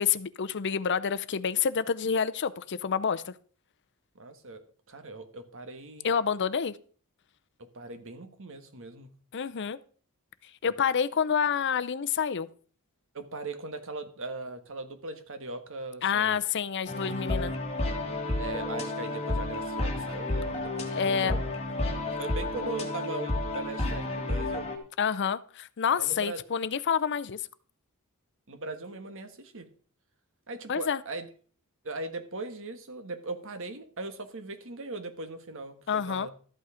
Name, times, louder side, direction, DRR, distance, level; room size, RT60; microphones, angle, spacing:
voice 1, 0.0-3.3 6.0-6.8 9.3-9.8 10.6-12.5 16.0-17.5 20.9-21.4 25.0-27.4 30.7-31.0 35.9-36.3, left 7 dB, 55° left, 14 dB, 0.6 m, -28 dB
voice 2, 4.1-4.6 4.9-6.1 7.6-9.1 10.6-10.7 13.1-16.4 17.1-17.2 18.4-21.4 22.0-24.7 26.0-26.4 28.5-29.7 30.5-31.3 31.8-36.3, right 3 dB, 60° right, 8 dB, 1.5 m, -39 dB
sound 1, 16.9-24.8, left 2 dB, 30° left, 2.1 m, -31 dB
13.0 x 8.4 x 4.9 m, 0.43 s
head